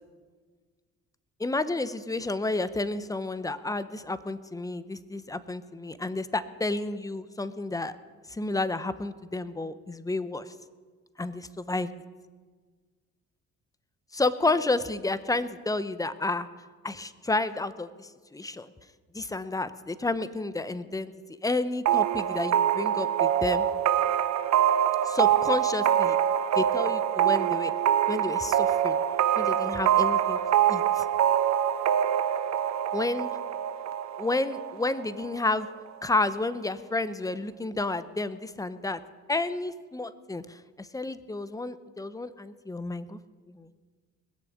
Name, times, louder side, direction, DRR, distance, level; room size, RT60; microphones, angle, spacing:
voice 1, 1.4-7.9 8.3-10.5 11.2-11.9 14.1-16.5 16.8-18.7 19.1-21.1 21.4-23.7 25.0-26.2 26.6-27.7 28.1-29.0 29.4-30.4 30.7-31.0 32.9-33.3 34.2-35.7 36.0-39.0 39.3-43.2 43.5-43.7, left 2 dB, 10° left, 13 dB, 0.8 m, -30 dB
sound 1, 21.9-35.4, right 10 dB, 60° right, 0.8 m, -25 dB
20.5 x 6.9 x 8.7 m, 1.5 s
cardioid pair, 90°, 30 cm